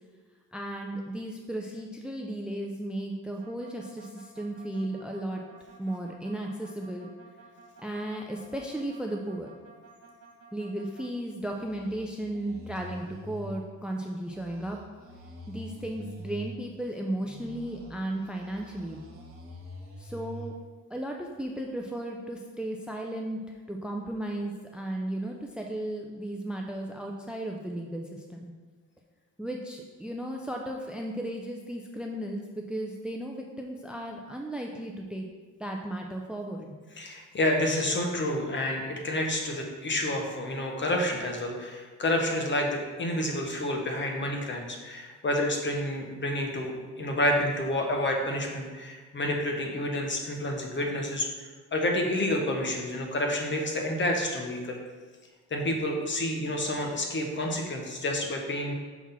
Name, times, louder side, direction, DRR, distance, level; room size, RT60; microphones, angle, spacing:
voice 1, 0.5-5.4 5.8-7.1 7.8-9.5 10.5-14.8 15.5-19.0 20.0-20.6 20.9-28.5 29.4-35.3 35.6-36.7, right 1 dB, 5° right, 1 dB, 0.5 m, -35 dB
sound 1, 3.4-11.1 11.4-13.6 14.1-16.6 17.1-20.5, right 1 dB, 50° right, 1.9 m, -46 dB
voice 2, 37.0-51.3 51.7-54.8 55.5-58.7, left 1 dB, 40° left, 1 dB, 1.3 m, -29 dB
6.1 x 3.6 x 5.7 m, 1.4 s
cardioid pair, 90°, 30 cm